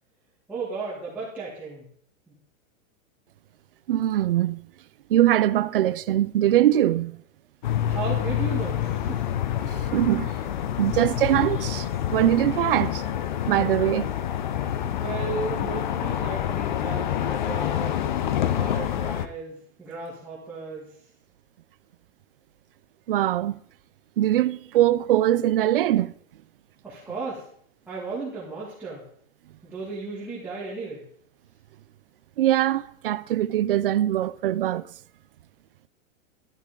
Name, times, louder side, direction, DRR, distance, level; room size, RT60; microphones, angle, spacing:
voice 1, 0.5-1.9 2.3-2.4 7.9-9.2 14.1-14.2 14.8-18.0 18.4-20.9 26.8-27.5 27.9-29.1 29.6-31.0, right 4 dB, 5° right, 2.4 m, -35 dB
voice 2, 3.9-4.6 5.1-7.2 9.7-10.3 10.8-13.0 13.5-14.1 23.1-23.6 24.2-26.1 32.4-34.9, right 13 dB, 45° right, 0.5 m, -22 dB
sound 1, 7.6-19.3, left 10 dB, 35° left, 0.5 m, -27 dB
12.5 x 11.5 x 3.8 m
supercardioid pair, 170°, 41 cm